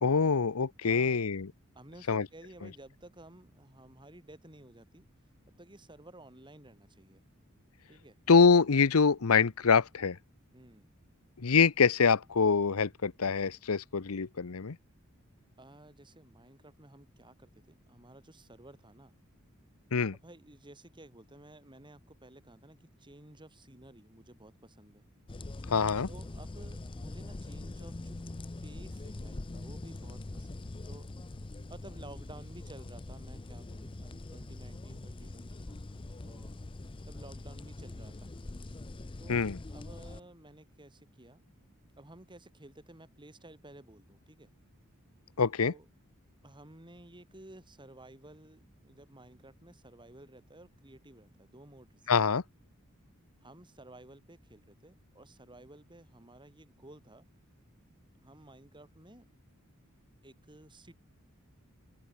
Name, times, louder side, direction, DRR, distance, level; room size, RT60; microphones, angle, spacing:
voice 1, 0.0-1.5 2.1-2.3 8.3-10.2 11.4-14.8 19.9-20.1 25.7-26.1 39.3-39.6 45.4-45.7 52.1-52.4, left 5 dB, 85° left, 0.8 m, -25 dB
voice 2, 0.8-1.3 1.7-5.1 5.5-7.2 7.9-8.2 10.5-10.9 15.6-19.1 20.2-25.0 26.1-28.2 28.6-31.1 31.7-35.8 36.2-36.5 37.0-38.3 39.2-41.4 42.0-44.5 45.6-45.9 46.4-52.3 53.4-57.3 58.1-59.3 60.2-60.9, right 1 dB, 20° right, 4.2 m, -54 dB
sound 1, 25.3-40.2, left 2 dB, 25° left, 0.5 m, -43 dB
open air
head